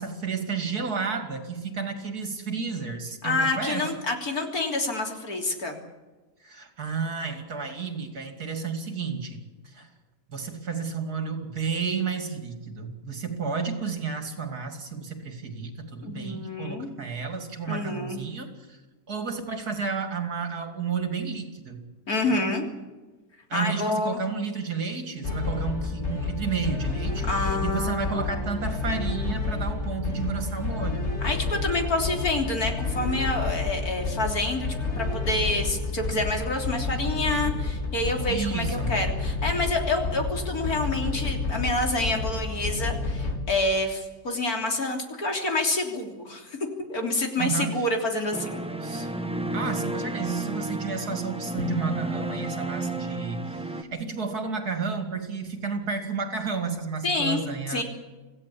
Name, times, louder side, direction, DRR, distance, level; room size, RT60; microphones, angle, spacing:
voice 1, 0.0-3.9 6.4-9.9 10.3-18.8 19.1-21.8 22.3-22.4 23.5-31.1 38.3-39.0 47.4-47.8 48.8-49.1 49.5-57.8, right 5 dB, 65° right, 6 dB, 3.2 m, -32 dB
voice 2, 3.2-5.8 16.0-16.9 17.7-18.2 22.1-22.6 23.5-24.2 27.3-28.5 31.2-34.7 35.0-46.6 46.9-48.6 48.9-49.1 57.0-57.4 57.7-57.8, left 2 dB, 60° left, 3 dB, 3.8 m, -28 dB
sound 1, 25.2-43.4, left 3 dB, 40° left, 3.9 m, -30 dB
sound 2, 48.3-53.8, right 2 dB, 5° right, 1.4 m, -31 dB
26.5 x 16.0 x 8.5 m, 1.2 s
omnidirectional pair, 1.8 m